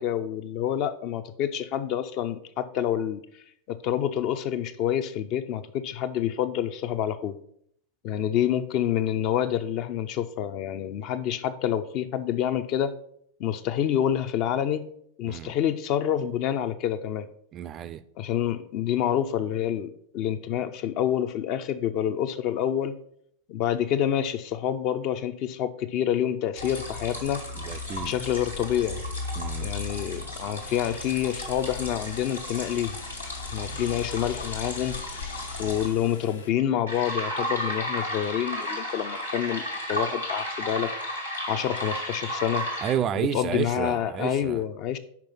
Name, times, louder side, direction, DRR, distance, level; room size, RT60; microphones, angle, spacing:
voice 1, 0.0-3.2 3.7-7.4 8.0-12.9 13.4-14.8 15.2-17.3 18.2-23.0 23.5-27.4 28.0-29.0 29.6-33.0 33.5-35.0 35.6-39.6 39.9-40.9 41.5-42.7 43.3-45.0, left 10 dB, 40° left, 0.5 m, -27 dB
voice 2, 17.5-18.0 27.5-28.2 29.4-29.7 42.8-44.6, right 9 dB, 30° right, 0.4 m, -31 dB
sound 1, 26.6-35.9 36.9-42.9, left 1 dB, 85° left, 1.8 m, -33 dB
sound 2, 30.4-36.5, left 5 dB, 65° left, 0.9 m, -45 dB
6.0 x 5.0 x 5.4 m
figure-of-eight pair, 90°, 0 cm